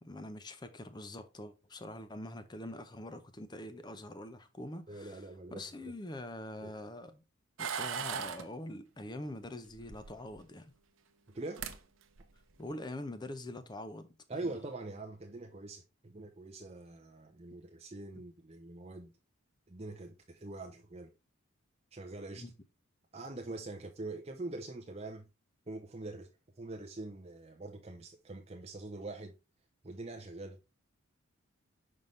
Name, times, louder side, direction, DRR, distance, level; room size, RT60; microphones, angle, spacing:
voice 1, 0.0-7.2 7.6-10.7 12.6-14.1 14.4-14.6 22.4-22.5, left 1 dB, 20° left, 0.5 m, -44 dB
voice 2, 4.9-5.7 6.6-6.7 11.3-11.7 14.3-19.1 19.7-21.1 21.9-22.5 23.1-25.3 25.7-26.3 26.6-29.3 29.8-30.6, right 2 dB, 30° right, 0.5 m, -44 dB
sound 1, 7.6-8.4 9.8-10.5 11.3-11.4 11.6-11.8 12.2-12.5, right 7 dB, 70° right, 0.7 m, -38 dB
5.6 x 5.3 x 3.1 m
head